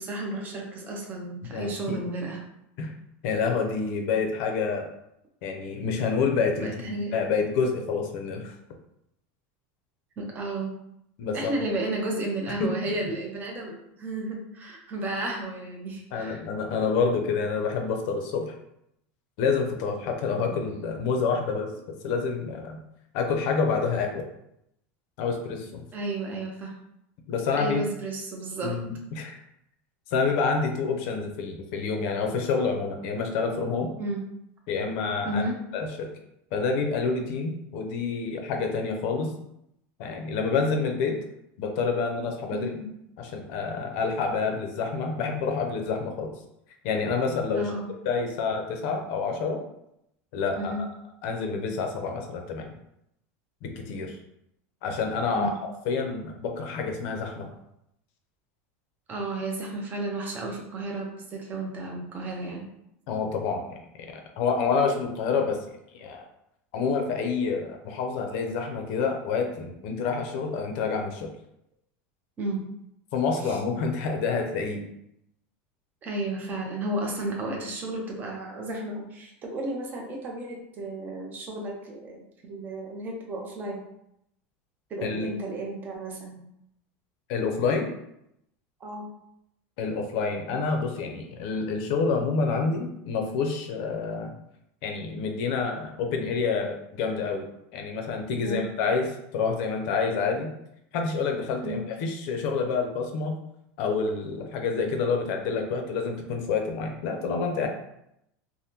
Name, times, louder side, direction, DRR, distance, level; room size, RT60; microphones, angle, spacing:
voice 1, 0.0-2.4 6.6-7.2 10.2-10.7 11.3-16.4 20.3-20.7 25.9-26.7 27.6-28.7 34.0-34.2 35.3-35.6 42.5-42.9 47.5-47.9 50.6-50.8 55.3-55.5 59.1-62.7 72.4-72.6 73.4-73.6 76.0-83.9 84.9-86.4 88.8-89.1 98.4-98.7 101.6-101.8, right 2 dB, 25° right, 0 dB, 0.7 m, -33 dB
voice 2, 1.5-2.0 2.8-2.9 3.2-4.9 5.4-8.5 11.2-11.5 12.5-12.6 16.1-18.5 19.4-21.7 22.0-22.8 23.1-24.2 25.2-25.8 27.3-27.8 28.6-29.4 30.1-33.9 34.7-35.4 35.7-36.1 36.5-39.3 40.0-41.2 41.6-42.7 43.2-46.3 46.8-47.7 48.0-49.6 50.3-50.9 51.2-52.7 53.6-54.2 54.8-55.5 55.9-57.5 63.1-65.6 65.9-66.3 66.7-71.3 73.1-74.8 85.0-85.3 87.3-87.9 89.8-94.3 94.8-97.5 97.7-100.5 100.9-103.4 103.8-107.7, left 5 dB, 55° left, 4 dB, 0.6 m, -28 dB
3.4 x 2.1 x 2.8 m, 0.79 s
supercardioid pair, 150°, 7 cm